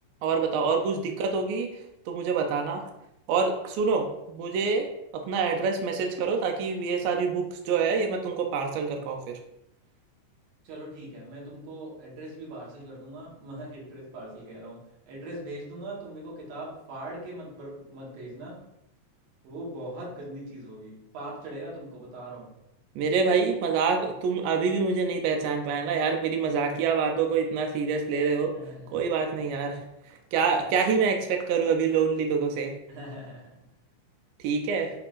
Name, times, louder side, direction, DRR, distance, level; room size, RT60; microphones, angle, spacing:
voice 1, 0.2-1.7 2.1-2.9 3.3-4.9 5.1-9.4 23.0-28.5 28.9-29.8 30.3-32.7 34.4-34.9, right 5 dB, 85° right, 3 dB, 2.3 m, -26 dB
voice 2, 10.6-18.6 19.4-22.5 28.5-29.1 32.9-33.6, right 1 dB, 60° right, -4 dB, 2.0 m, -41 dB
6.1 x 3.3 x 2.4 m, 0.85 s
omnidirectional pair, 4.0 m